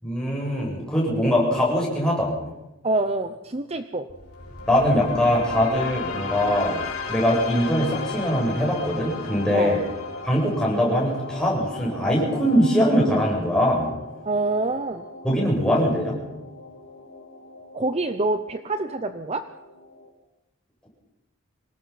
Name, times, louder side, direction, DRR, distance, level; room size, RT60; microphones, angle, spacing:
voice 1, 0.0-2.3 4.7-6.8 7.1-9.8 10.2-13.9 15.2-16.2, equal, 5° left, -3 dB, 7.6 m, -22 dB
voice 2, 2.8-4.1 9.5-9.8 14.3-15.0 17.7-19.4, right 2 dB, 30° right, 9 dB, 0.8 m, -26 dB
sound 1, 4.1-20.1, left 3 dB, 85° left, 4.8 m, -36 dB
25.5 x 18.5 x 6.0 m, 0.97 s
head